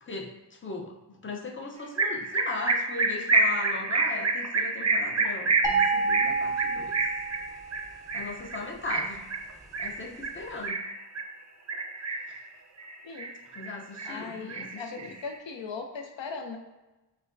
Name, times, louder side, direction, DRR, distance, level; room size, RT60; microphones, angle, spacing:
voice 1, 0.0-7.0 8.1-9.2 9.8-10.8 13.5-15.1, left 3 dB, 25° left, 0 dB, 0.7 m, -38 dB
sound 1, 2.0-11.3 11.7-12.4 12.8-13.7 14.0-15.3, right 3 dB, 40° right, 0.5 m, -28 dB
sound 2, 5.6-7.9, right 4 dB, 10° right, 0.7 m, -29 dB
voice 2, 14.0-16.6, left 4 dB, 85° left, 4 dB, 0.6 m, -38 dB
5.0 x 3.4 x 2.5 m, 1.1 s
wide cardioid pair, 55°, 44 cm